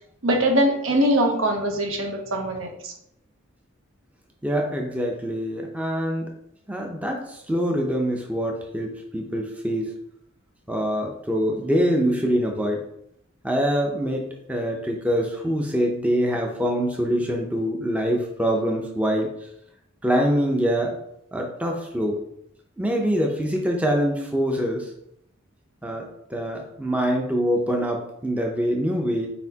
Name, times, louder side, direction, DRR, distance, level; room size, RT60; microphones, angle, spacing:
voice 1, 0.2-2.9, right 1 dB, 70° right, 3 dB, 0.8 m, -22 dB
voice 2, 4.4-6.3 6.7-9.9 10.7-12.9 13.4-19.3 20.0-21.0 21.3-22.2 22.8-24.9 25.8-29.3, equal, 5° right, 1 dB, 0.5 m, -24 dB
4.4 x 4.2 x 2.8 m, 0.74 s
head